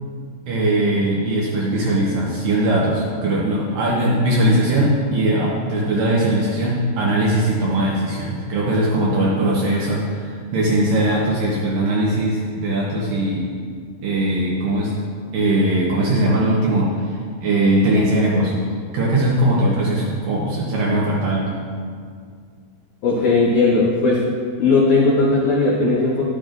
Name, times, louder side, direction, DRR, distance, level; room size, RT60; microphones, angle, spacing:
voice 1, 0.5-13.5 14.0-14.9 15.3-18.6 18.9-21.6, right 1 dB, 70° right, -5 dB, 2.3 m, -20 dB
voice 2, 23.0-24.2 24.6-26.2, left 3 dB, 80° left, -4 dB, 1.7 m, -17 dB
10.5 x 8.4 x 2.5 m, 2.1 s
omnidirectional pair, 4.7 m